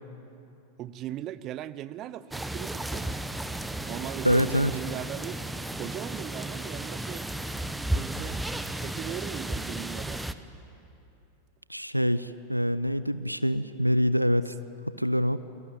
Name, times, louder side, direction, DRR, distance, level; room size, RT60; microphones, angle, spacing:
voice 1, 0.8-3.2 3.9-5.4 5.7-7.2 7.9-8.4 8.8-10.2, right 12 dB, 35° right, 17 dB, 0.8 m, -38 dB
sound 1, 2.3-10.3, right 1 dB, 5° right, 1.0 m, -34 dB
sound 2, 2.9-9.4, left 3 dB, 15° left, 2.2 m, -53 dB
voice 2, 4.2-4.7 11.7-14.5 14.9-15.4, equal, 90° right, 15 dB, 0.6 m, -25 dB
28.5 x 22.0 x 8.9 m, 2.8 s
figure-of-eight pair, 90°, 0 cm